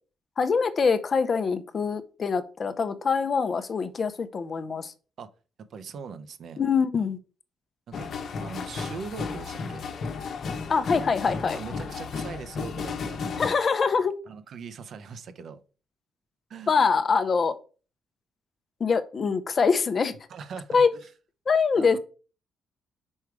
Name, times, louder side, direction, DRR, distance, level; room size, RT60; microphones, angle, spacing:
voice 1, 0.4-4.9 6.6-7.2 10.7-11.6 13.4-14.2 16.7-17.6 18.8-20.1 20.7-20.9 21.5-22.0, left 5 dB, 40° left, 0.7 m, -24 dB
voice 2, 5.7-6.6 7.9-8.1 8.4-9.8 11.5-13.5 14.3-15.6 16.5-16.8 20.3-20.8 21.8-22.0, right 5 dB, 60° right, 0.8 m, -40 dB
sound 1, 7.9-13.5, left 5 dB, 60° left, 1.0 m, -33 dB
5.4 x 4.7 x 4.7 m
cardioid pair, 90°, 0 cm